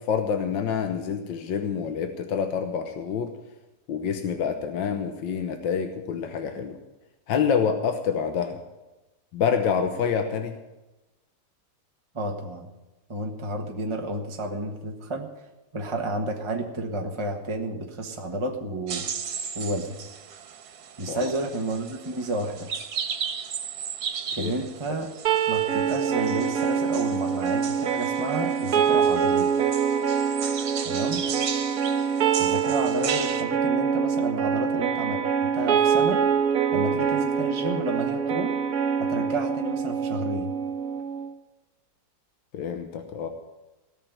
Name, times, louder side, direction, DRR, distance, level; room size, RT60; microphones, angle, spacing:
voice 1, 0.0-3.3 3.9-6.8 7.3-8.6 9.3-10.5 21.1-21.3 24.4-24.5 42.5-43.3, left 7 dB, 80° left, 6 dB, 1.7 m, -27 dB
voice 2, 12.1-12.7 13.1-15.3 15.7-19.0 19.5-19.9 21.0-22.7 24.4-25.1 25.5-29.5 30.8-31.2 32.4-36.2 36.7-38.5 39.0-40.5, right 2 dB, 15° right, 2 dB, 1.3 m, -31 dB
sound 1, 18.9-33.4, right 7 dB, 85° right, 1.9 m, -36 dB
sound 2, 25.2-41.3, right 7 dB, 55° right, 1.5 m, -25 dB
18.0 x 6.7 x 9.2 m, 1.1 s
omnidirectional pair, 2.0 m